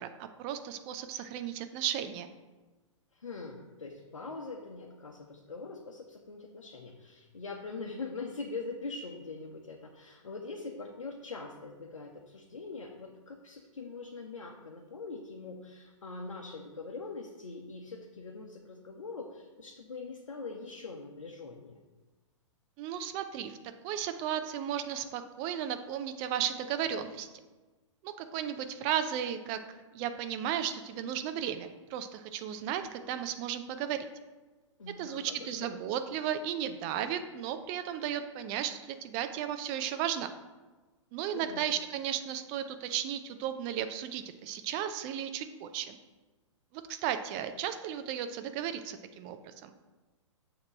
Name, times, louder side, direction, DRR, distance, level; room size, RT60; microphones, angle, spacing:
voice 1, 0.0-2.3 22.8-23.6 23.8-27.3 28.0-29.6 29.9-34.1 35.0-40.3 41.1-46.0 46.7-49.7, right 9 dB, 30° right, 9 dB, 0.5 m, -34 dB
voice 2, 3.1-21.8 34.8-35.8 41.3-41.7, left 3 dB, 75° left, 0 dB, 0.8 m, -43 dB
7.3 x 3.0 x 6.0 m, 1.2 s
figure-of-eight pair, 115°, 16 cm